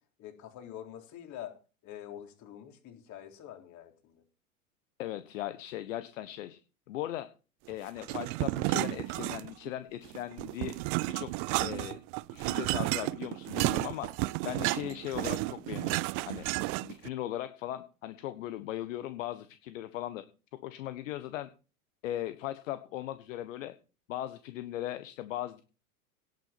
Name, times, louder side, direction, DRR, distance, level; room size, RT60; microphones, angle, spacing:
voice 1, 0.2-1.5 1.8-4.2, left 11 dB, 40° left, 5 dB, 3.8 m, -46 dB
voice 2, 5.0-6.6 6.9-7.3 7.7-10.7 11.1-11.3 11.6-12.0 12.3-14.1 14.4-16.5 16.8-20.2 20.6-21.5 22.0-23.7 24.1-25.6, left 13 dB, 60° left, 12 dB, 1.4 m, -38 dB
sound 1, 8.0-9.7 10.1-17.1, right 23 dB, 35° right, 0.5 m, -32 dB
18.0 x 8.4 x 4.5 m, 0.34 s
figure-of-eight pair, 90°, 44 cm